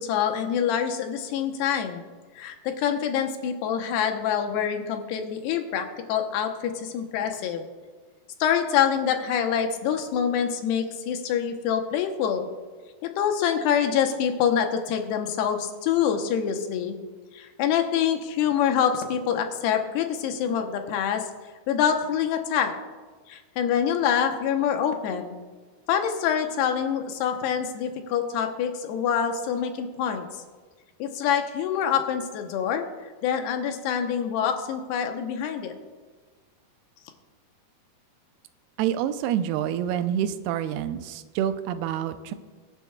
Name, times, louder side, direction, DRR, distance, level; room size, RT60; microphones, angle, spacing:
voice 1, 0.0-2.0 2.4-7.6 8.4-12.5 13.0-17.0 17.3-21.2 21.7-22.7 23.3-25.3 25.9-30.3 31.0-32.9 33.2-35.7, left 8 dB, 80° left, 5 dB, 3.0 m, -26 dB
voice 2, 38.8-42.3, right 10 dB, 80° right, 9 dB, 2.5 m, -27 dB
23.5 x 9.7 x 2.3 m, 1.4 s
omnidirectional pair, 4.7 m